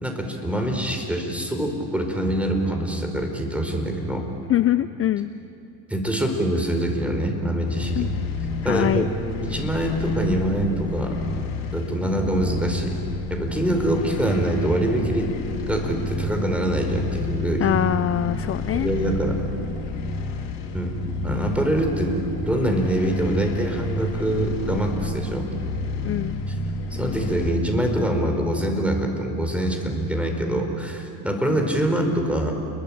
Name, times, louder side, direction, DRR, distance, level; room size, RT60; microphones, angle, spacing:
voice 1, 0.0-4.2 5.9-8.1 8.6-9.0 9.4-11.2 11.7-13.0 13.3-15.3 15.7-17.6 18.7-19.4 20.7-21.0 21.2-25.5 26.9-32.5, right 1 dB, 5° right, 3 dB, 4.8 m, -24 dB
voice 2, 4.5-5.3 8.0-8.1 8.6-9.1 17.6-18.9 26.0-26.4, left 12 dB, 40° left, 13 dB, 0.6 m, -23 dB
sound 1, 7.6-27.5, left 2 dB, 75° left, 4.2 m, -30 dB
29.5 x 22.5 x 8.9 m, 2.6 s
cardioid pair, 110°, 37 cm